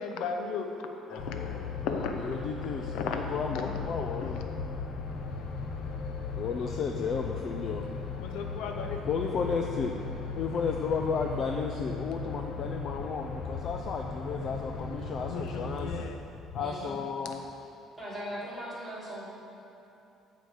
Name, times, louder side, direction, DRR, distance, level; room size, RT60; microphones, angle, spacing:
voice 1, 0.0-2.4 2.9-3.7 4.0-4.4 8.2-9.1 15.2-16.2 16.5-16.6, left 5 dB, 90° left, 4 dB, 0.9 m, -36 dB
voice 2, 1.1-4.4 6.3-7.9 9.0-10.0 10.3-16.1 16.5-17.5, left 5 dB, 40° left, 3 dB, 0.5 m, -33 dB
sound 1, 1.2-16.0, left 4 dB, 65° left, 1.0 m, -37 dB
voice 3, 16.6-17.0 18.0-19.3, equal, ahead, -9 dB, 2.9 m, -39 dB
14.5 x 5.1 x 6.5 m, 2.8 s
cardioid pair, 170°, 0 cm